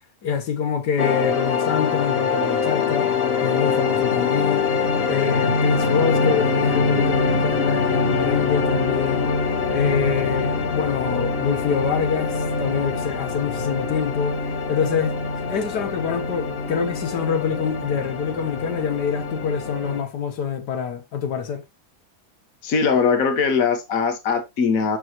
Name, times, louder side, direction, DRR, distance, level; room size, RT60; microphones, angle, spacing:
voice 1, 0.2-3.1 3.4-4.7 5.1-9.3 9.7-14.4 14.7-21.6, left 7 dB, 90° left, 1.8 m, -25 dB
sound 1, 1.0-20.0, left 4 dB, 40° left, 1.1 m, -24 dB
voice 2, 22.6-25.0, left 5 dB, 60° left, 1.7 m, -20 dB
7.1 x 5.9 x 3.0 m
omnidirectional pair, 1.7 m